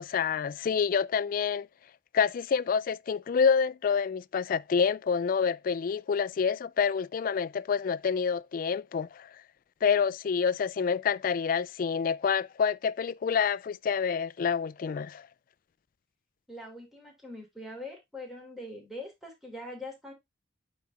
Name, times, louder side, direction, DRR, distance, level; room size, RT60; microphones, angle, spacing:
voice 1, 0.0-1.7 2.1-9.3 9.8-15.2, left 6 dB, 45° left, 0.3 m, -27 dB
voice 2, 16.5-20.1, left 1 dB, ahead, 3.0 m, -42 dB
9.2 x 4.1 x 3.4 m
head